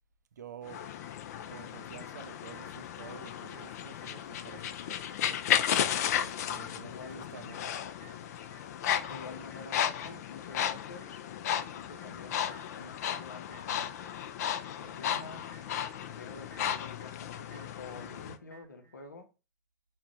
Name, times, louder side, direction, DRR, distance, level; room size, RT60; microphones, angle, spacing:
voice 1, 0.4-0.8 1.5-5.0 6.2-7.7, right 8 dB, 75° right, 0.4 m, -50 dB
sound 1, 0.7-18.4, left 10 dB, 60° left, 0.4 m, -34 dB
sound 2, 1.0-19.0, left 1 dB, 20° left, 0.8 m, -59 dB
voice 2, 6.8-7.3 9.1-14.1 14.8-15.6 16.1-19.3, left 3 dB, 85° left, 0.7 m, -48 dB
4.7 x 2.2 x 3.6 m
figure-of-eight pair, 90°, 9 cm